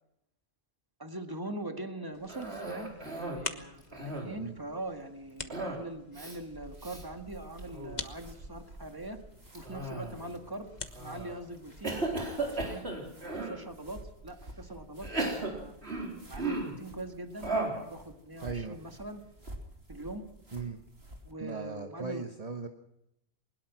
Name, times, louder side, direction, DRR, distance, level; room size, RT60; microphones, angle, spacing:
voice 1, 1.0-9.2 9.5-10.7 11.0-12.0 12.4-12.8 13.2-15.8 16.3-19.2 19.9-20.2 21.2-22.2, right 1 dB, 20° right, 6 dB, 1.9 m, -42 dB
sound 1, 2.1-12.3, left 3 dB, 45° left, 1.4 m, -47 dB
Cough, 2.3-3.5 3.8-4.5 5.5-5.9 6.1-6.4 6.8-7.0 7.6-8.0 9.6-10.3 10.9-11.3 11.8-13.6 14.3-14.4 15.0-16.8 17.4-17.9, right 2 dB, 90° right, 4.6 m, -35 dB
sound 2, 6.3-21.3, right 1 dB, 70° right, 3.2 m, -50 dB
voice 2, 18.4-18.8 20.5-20.8 21.4-22.7, right 4 dB, 40° right, 5 dB, 1.3 m, -38 dB
21.0 x 20.5 x 6.1 m, 0.82 s
omnidirectional pair, 1.0 m